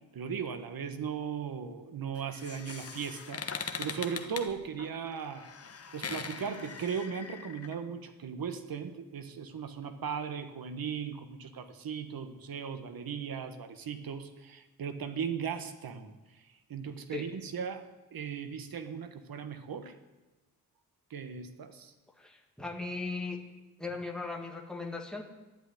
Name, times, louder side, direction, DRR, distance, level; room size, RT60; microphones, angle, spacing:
voice 1, 0.1-5.5 5.9-19.9 21.1-21.9, right 7 dB, 70° right, 9 dB, 1.4 m, -38 dB
sound 1, 2.1-7.7, left 5 dB, 40° left, 1.2 m, -41 dB
voice 2, 22.2-23.4 23.8-25.2, left 3 dB, ahead, 1 dB, 1.9 m, -38 dB
12.5 x 11.0 x 9.7 m, 1.1 s
wide cardioid pair, 150°, 36 cm